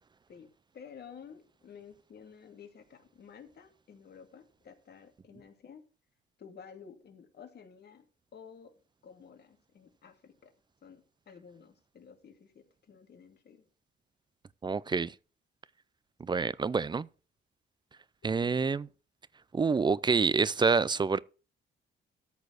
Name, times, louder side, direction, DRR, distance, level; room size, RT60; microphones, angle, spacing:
voice 1, 0.3-5.8 6.4-8.0 8.3-8.7 9.0-10.5 10.8-13.7, left 6 dB, 50° left, 2.3 m, -52 dB
voice 2, 14.6-15.1 16.2-17.1 18.2-18.8 19.5-21.2, right 4 dB, 20° right, 0.5 m, -27 dB
13.5 x 4.6 x 6.3 m
cardioid pair, 100°, 21 cm